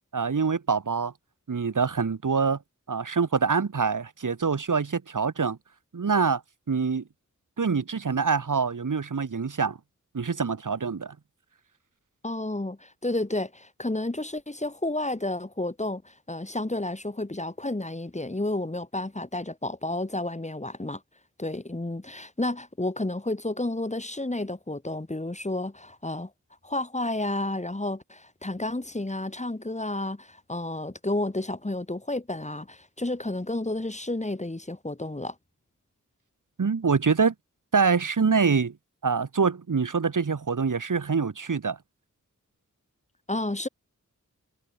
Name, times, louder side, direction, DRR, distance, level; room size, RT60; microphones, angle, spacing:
voice 1, 0.1-1.1 1.5-2.6 2.9-5.6 5.9-6.4 6.7-7.0 7.6-9.8 10.1-11.2 36.6-37.3 37.7-38.7 39.0-41.8, right 5 dB, 80° right, 5.4 m, -25 dB
voice 2, 12.2-21.0 21.4-26.3 26.6-35.3 43.3-43.7, left 2 dB, 20° left, 6.1 m, -31 dB
wide cardioid pair, 95°, 31 cm